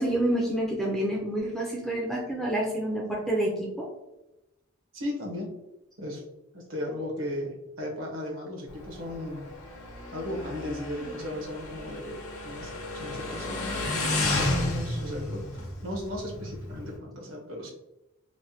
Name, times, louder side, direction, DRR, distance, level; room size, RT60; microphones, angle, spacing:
voice 1, 0.0-3.9, right 1 dB, ahead, -2 dB, 0.4 m, -28 dB
voice 2, 4.9-5.5 6.0-6.2 6.5-9.5 10.1-13.9 14.3-15.4 15.8-17.7, left 1 dB, 65° right, -2 dB, 0.9 m, -36 dB
Motorcycle, 8.7-17.0, left 2 dB, 75° left, 0.7 m, -32 dB
3.2 x 2.1 x 2.7 m, 0.93 s
head